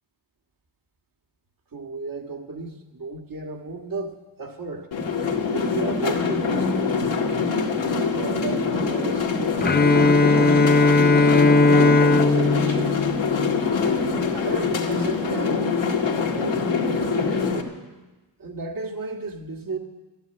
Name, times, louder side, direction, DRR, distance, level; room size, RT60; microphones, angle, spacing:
voice 1, 1.7-4.9 5.5-7.1 7.9-10.8 11.5-13.0 13.8-15.7 16.1-17.7 18.4-19.8, right 3 dB, 50° right, 3 dB, 2.0 m, -34 dB
sound 1, 4.9-17.6, left 5 dB, 85° left, 2.2 m, -24 dB
Bowed string instrument, 9.6-13.7, left 3 dB, 25° left, 0.6 m, -18 dB
15.0 x 12.0 x 8.0 m, 1.2 s
wide cardioid pair, 105°, 44 cm